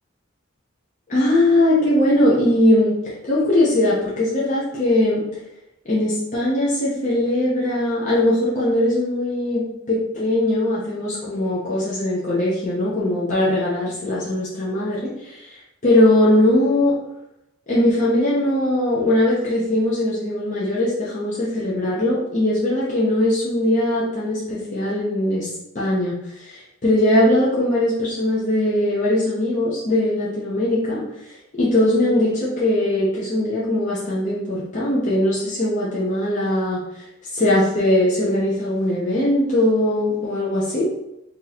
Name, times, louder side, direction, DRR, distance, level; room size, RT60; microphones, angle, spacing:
voice 1, 1.1-3.0 3.2-5.2 5.9-15.6 15.8-17.0 17.7-25.5 25.7-37.0 37.3-40.9, left 1 dB, 35° left, -8 dB, 0.7 m, -20 dB
3.0 x 2.7 x 4.0 m, 0.87 s
head